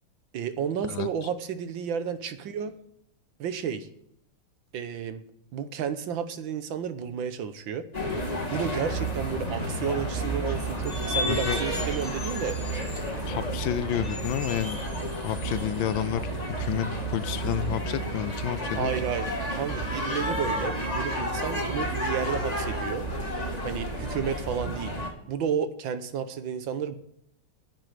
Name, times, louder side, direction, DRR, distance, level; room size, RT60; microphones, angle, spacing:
voice 1, 0.3-2.7 3.4-3.9 4.7-7.8 8.5-12.6 18.7-19.3 19.5-23.0 23.6-25.0 25.3-27.0, right 7 dB, 70° right, 11 dB, 1.6 m, -32 dB
voice 2, 0.9-1.3 11.3-11.6 13.3-14.8 15.2-18.9, left 11 dB, 75° left, 14 dB, 1.3 m, -30 dB
sound 1, 7.9-25.1, right 1 dB, 20° left, 2.0 m, -31 dB
10.0 x 7.6 x 9.4 m, 0.72 s
omnidirectional pair, 2.3 m